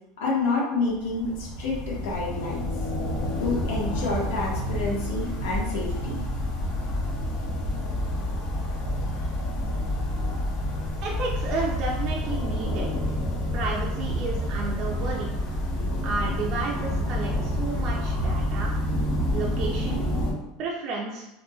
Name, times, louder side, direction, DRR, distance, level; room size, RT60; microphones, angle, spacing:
voice 1, 0.2-1.3 1.6-2.7 3.4-6.2, left 3 dB, 80° left, -4 dB, 1.2 m, -28 dB
sound 1, 0.9-20.3, left 1 dB, 45° left, 0.8 m, -28 dB
voice 2, 11.0-12.9 13.5-15.3 16.0-18.7 19.3-20.1 20.6-21.3, right 3 dB, 40° right, -3 dB, 0.5 m, -32 dB
3.7 x 2.6 x 2.4 m, 0.92 s
supercardioid pair, 160°, 0 cm